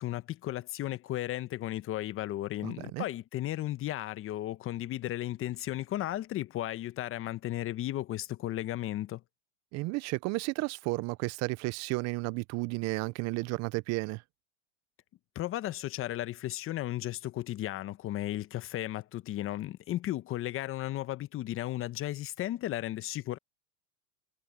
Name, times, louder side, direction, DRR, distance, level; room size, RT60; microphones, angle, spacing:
voice 1, 0.0-9.2 15.3-23.4, left 14 dB, 35° left, 1.2 m, -35 dB
voice 2, 2.6-3.0 9.7-14.2, right 24 dB, 45° right, 0.7 m, -33 dB
hypercardioid pair, 115°, 37 cm